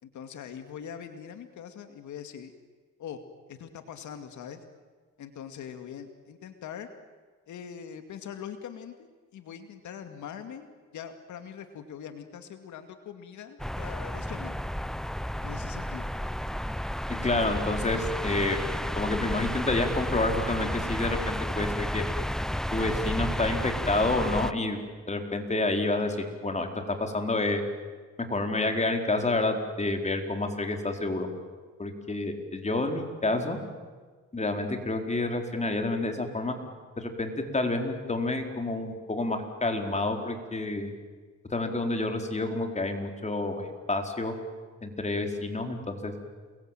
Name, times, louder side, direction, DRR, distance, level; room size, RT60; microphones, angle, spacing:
voice 1, 0.0-2.5 3.0-3.2 3.5-4.6 5.2-6.9 7.5-14.6 15.4-16.1, left 8 dB, 75° left, 8 dB, 2.4 m, -42 dB
sound 1, 13.6-24.5, equal, ahead, 0.8 m, -32 dB
voice 2, 17.2-18.6 19.0-22.0 22.7-24.8 25.1-26.2 26.4-27.6 28.3-31.3 31.8-33.6 34.3-36.5 37.0-40.9 41.5-44.4 44.8-46.1, left 2 dB, 25° left, 4 dB, 4.5 m, -29 dB
29.0 x 22.0 x 9.2 m, 1.5 s
cardioid pair, 90°, 30 cm